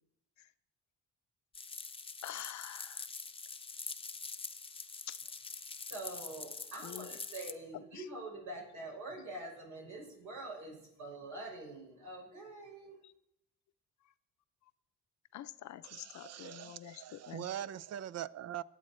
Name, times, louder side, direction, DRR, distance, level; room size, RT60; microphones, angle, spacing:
sound 1, 1.5-7.5, left 4 dB, 20° left, 0.7 m, -45 dB
voice 1, 2.2-3.1 5.1-5.2 6.8-7.2 7.9-8.0 15.3-17.5, left 12 dB, 70° left, 0.7 m, -46 dB
voice 2, 5.9-13.0, right 2 dB, 80° right, 6.3 m, -45 dB
voice 3, 15.8-18.6, right 11 dB, 55° right, 0.6 m, -42 dB
20.5 x 8.0 x 4.5 m
cardioid pair, 90°, 30 cm